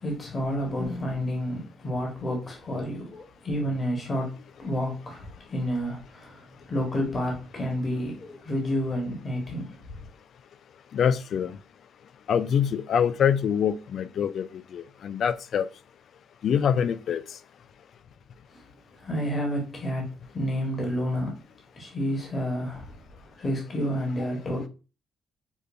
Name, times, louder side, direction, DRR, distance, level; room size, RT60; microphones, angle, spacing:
voice 1, 0.0-9.8 18.5-18.6 19.0-21.4 21.8-22.9 23.2-24.7, equal, 35° left, 1.3 m, -30 dB
voice 2, 10.9-11.6 12.3-14.5 14.7-15.7 16.4-17.2, left 8 dB, 65° left, 0.3 m, -24 dB
5.1 x 2.2 x 2.5 m
cardioid pair, 90°, 0 cm